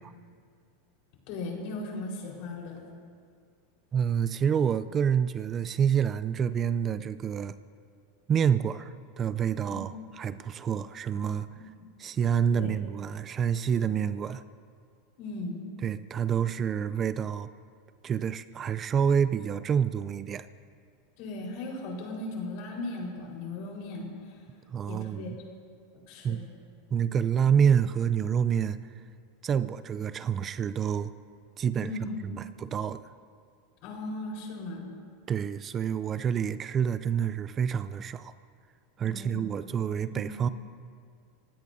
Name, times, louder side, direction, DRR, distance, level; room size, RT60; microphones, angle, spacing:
voice 1, 1.3-2.8 9.7-9.8 11.6-11.7 12.5-12.7 15.2-15.6 21.2-24.4 24.9-25.3 26.1-26.5 31.8-32.2 33.8-34.9 39.0-39.5 40.1-40.3, left 2 dB, 60° left, -1 dB, 4.5 m, -37 dB
voice 2, 3.9-7.6 8.3-9.9 10.2-11.5 12.0-14.4 15.8-17.5 18.0-20.5 24.7-25.4 26.2-26.4 26.9-28.8 29.4-31.1 31.6-31.9 32.3-33.1 35.3-38.3 39.0-40.5, right 7 dB, 30° right, 14 dB, 0.5 m, -27 dB
29.0 x 16.5 x 2.7 m, 2.1 s
hypercardioid pair, 115°, 0 cm